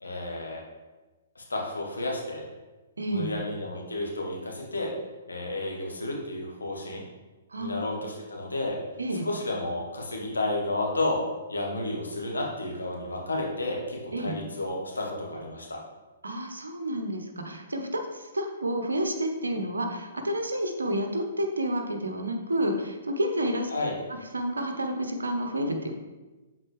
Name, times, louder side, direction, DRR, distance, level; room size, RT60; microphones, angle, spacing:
voice 1, 0.0-0.6 1.3-2.4 3.1-4.9 5.3-7.0 7.6-8.8 9.2-11.2 11.5-15.8 23.7-23.9, left 2 dB, 80° left, -1 dB, 1.4 m, -31 dB
voice 2, 3.0-3.3 7.5-8.1 9.0-9.3 14.1-14.4 16.2-23.7 24.3-25.9, right 1 dB, 80° right, 5 dB, 0.9 m, -30 dB
7.4 x 4.0 x 3.2 m, 1.2 s
figure-of-eight pair, 120°, 0 cm